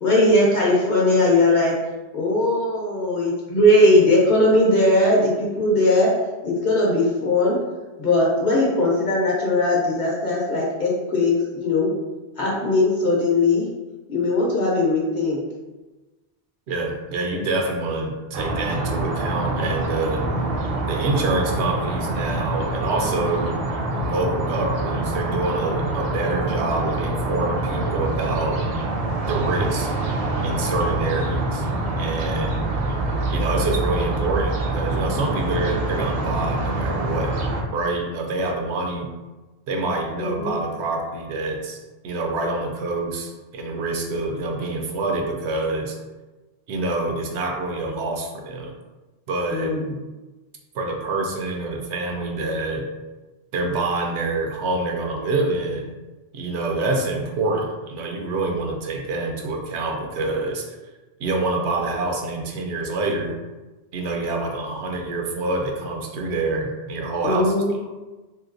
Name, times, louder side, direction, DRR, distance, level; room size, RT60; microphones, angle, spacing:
voice 1, 0.0-1.8 2.1-6.1 6.4-7.6 8.0-11.9 12.4-13.7 14.1-15.4 40.2-40.6 49.5-50.0 67.2-67.7, left 1 dB, 50° left, -4 dB, 0.7 m, -19 dB
voice 2, 16.7-20.2 20.9-23.6 24.0-28.6 29.3-29.9 30.4-31.6 32.0-32.6 33.3-37.3 37.7-39.1 39.7-41.8 42.0-46.0 46.7-48.7 49.3-49.7 50.7-52.9 53.5-55.9 56.3-60.6 61.2-63.4 63.9-67.5, right 2 dB, 75° right, 2 dB, 0.8 m, -26 dB
sound 1, 18.3-37.6, right 2 dB, 60° right, 0.4 m, -25 dB
3.1 x 2.8 x 2.5 m, 1.2 s
omnidirectional pair, 1.1 m